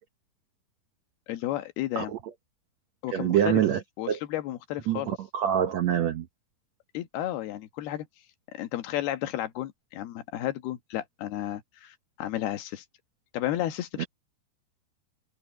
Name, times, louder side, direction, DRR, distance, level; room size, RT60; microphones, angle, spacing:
voice 1, 1.3-2.1 3.0-3.6 4.0-5.1 6.9-8.1 8.5-12.8 13.3-14.1, left 13 dB, 75° left, 3.2 m, -32 dB
voice 2, 3.1-3.8 4.1-4.2 4.9-6.3 14.0-14.1, right 10 dB, 90° right, 1.5 m, -25 dB
omnidirectional pair, 4.7 m